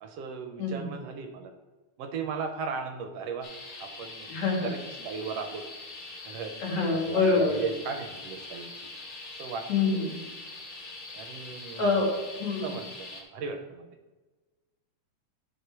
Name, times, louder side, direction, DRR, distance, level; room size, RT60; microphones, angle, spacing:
voice 1, 0.0-1.5 2.0-3.5 3.8-4.3 4.6-5.6 6.2-6.5 6.9-8.7 9.4-9.6 9.9-10.1 11.1-11.9 12.6-13.9, right 5 dB, 70° right, 6 dB, 1.6 m, -36 dB
voice 2, 0.6-0.9 4.3-4.7 6.6-7.6 9.7-10.2 11.8-12.1 12.3-12.7, left 4 dB, 70° left, -3 dB, 3.4 m, -26 dB
sound 1, 3.4-13.2, left 3 dB, 45° left, 2.1 m, -43 dB
10.0 x 5.5 x 4.5 m, 1.3 s
omnidirectional pair, 3.3 m